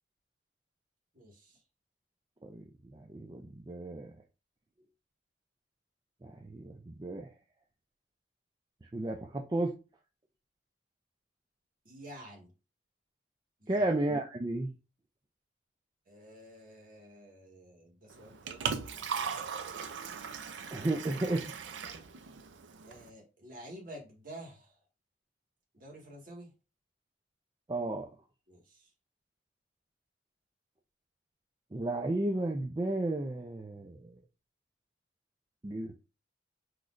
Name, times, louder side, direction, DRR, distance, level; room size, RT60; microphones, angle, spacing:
voice 1, 1.1-1.6 11.8-12.5 13.6-13.9 16.0-19.4 22.8-24.8 25.7-26.5 28.5-28.9, right 1 dB, 50° right, 1.7 m, -50 dB
voice 2, 2.4-4.1 6.2-7.3 8.9-9.7 13.7-14.7 20.7-21.7 27.7-28.1 31.7-34.2 35.6-36.0, right 2 dB, 25° right, 0.4 m, -33 dB
Liquid, 18.1-23.1, right 6 dB, 80° right, 0.5 m, -39 dB
6.1 x 3.1 x 2.5 m
head